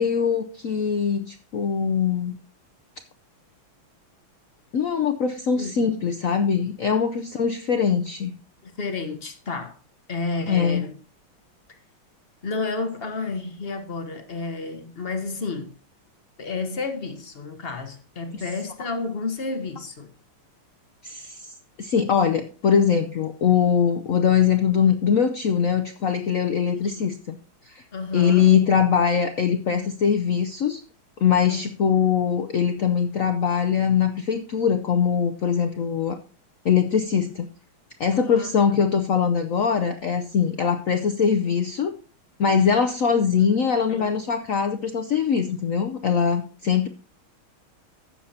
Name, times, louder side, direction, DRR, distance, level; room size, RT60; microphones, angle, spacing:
voice 1, 0.0-2.4 4.7-8.3 10.5-10.8 21.0-21.5 21.8-27.4 27.6-27.8 28.1-30.8 31.2-36.2 36.6-37.5 38.0-41.9 42.4-46.9, left 7 dB, 75° left, 0.7 m, -22 dB
voice 2, 5.5-5.9 8.6-9.8 10.1-11.0 12.4-15.7 16.4-20.1 26.7-27.1 27.9-28.5 31.5-31.7 38.1-38.8 43.9-44.2, left 3 dB, 40° left, 0.9 m, -31 dB
15.0 x 7.2 x 2.8 m
omnidirectional pair, 2.3 m